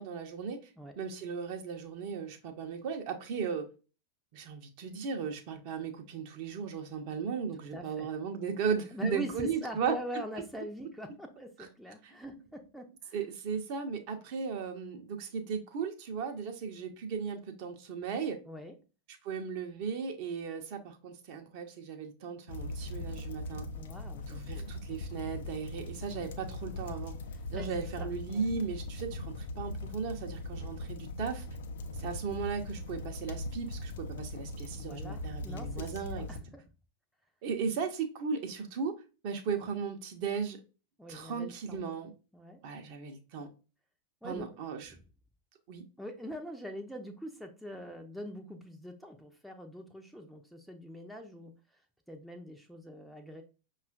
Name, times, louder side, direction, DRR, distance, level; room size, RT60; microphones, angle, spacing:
voice 1, 0.0-0.6 1.0-3.7 4.3-9.9 12.0-12.1 13.1-18.4 19.2-23.6 24.3-27.1 27.5-31.5 32.0-36.3 37.4-38.9 39.2-40.6 41.1-42.1 42.6-43.5 44.2-44.9 45.7-45.8, right 6 dB, 45° right, 0.7 m, -36 dB
voice 2, 7.7-8.1 8.9-13.2 18.5-18.7 23.7-24.7 27.5-27.7 28.0-28.5 34.7-35.9 36.1-36.6 41.0-41.8 42.3-42.6 44.2-44.5 46.0-51.5 52.1-53.4, equal, ahead, 0.5 m, -43 dB
sound 1, 22.5-36.4, left 2 dB, 60° left, 0.4 m, -40 dB
5.5 x 2.4 x 2.3 m
figure-of-eight pair, 90°, 0 cm